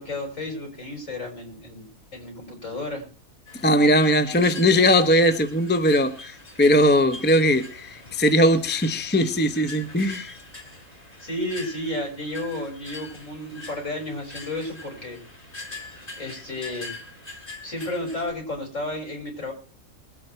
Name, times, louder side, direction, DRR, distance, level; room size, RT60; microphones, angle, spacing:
voice 1, 0.0-3.0 4.3-4.4 11.2-15.2 16.2-17.0 17.6-19.5, left 1 dB, 55° left, 1 dB, 6.8 m, -32 dB
sound 1, 3.5-18.3, left 3 dB, 25° left, 2.9 m, -43 dB
voice 2, 3.6-10.3, equal, 10° left, 9 dB, 0.8 m, -20 dB
21.5 x 9.3 x 4.5 m, 0.38 s
omnidirectional pair, 1.6 m